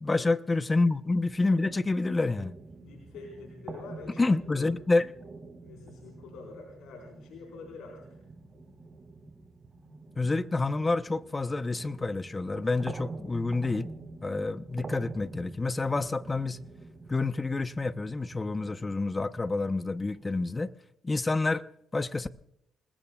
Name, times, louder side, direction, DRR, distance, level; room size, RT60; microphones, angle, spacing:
voice 1, 0.0-2.5 4.2-5.1 10.2-13.9 14.2-16.6 17.1-20.7 21.0-21.6 21.9-22.3, left 3 dB, 25° left, 0.8 m, -28 dB
sound 1, 1.3-20.5, right 3 dB, 35° right, 4.5 m, -47 dB
voice 2, 2.8-5.0 5.6-8.2, left 4 dB, 90° left, 4.4 m, -47 dB
28.5 x 20.0 x 2.4 m
cardioid pair, 90°, 0 cm